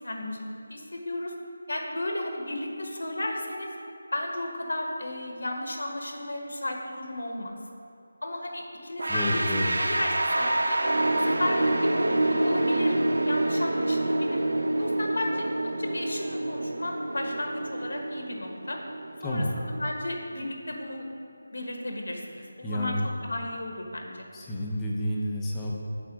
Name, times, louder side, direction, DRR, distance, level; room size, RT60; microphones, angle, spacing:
voice 1, 0.0-0.4 0.7-1.3 1.7-3.7 4.1-7.6 8.2-9.5 9.8-10.8 11.2-12.9 13.3-14.4 14.8-18.8 19.2-21.1 21.5-23.0 23.3-24.3, left 1 dB, 75° left, 2 dB, 1.2 m, -34 dB
sound 1, 9.0-19.9, right 1 dB, 85° right, 0.6 m, -27 dB
voice 2, 9.1-9.8 19.2-19.5 22.6-23.1 24.3-25.7, left 1 dB, 5° left, -3 dB, 0.5 m, -29 dB
7.7 x 4.2 x 6.0 m, 2.7 s
figure-of-eight pair, 175°, 0 cm